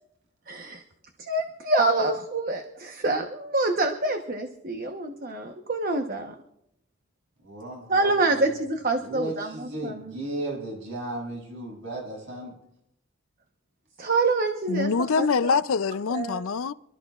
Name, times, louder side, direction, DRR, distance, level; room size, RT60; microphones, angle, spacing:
voice 1, 0.5-0.8 1.2-6.3 7.9-10.2 14.0-15.3 16.1-16.4, right 2 dB, 40° right, 1.0 m, -26 dB
voice 2, 7.4-8.4 9.0-12.5, right 1 dB, 55° right, 7.7 m, -35 dB
voice 3, 14.7-16.7, left 5 dB, 70° left, 0.5 m, -24 dB
27.5 x 13.5 x 2.4 m
head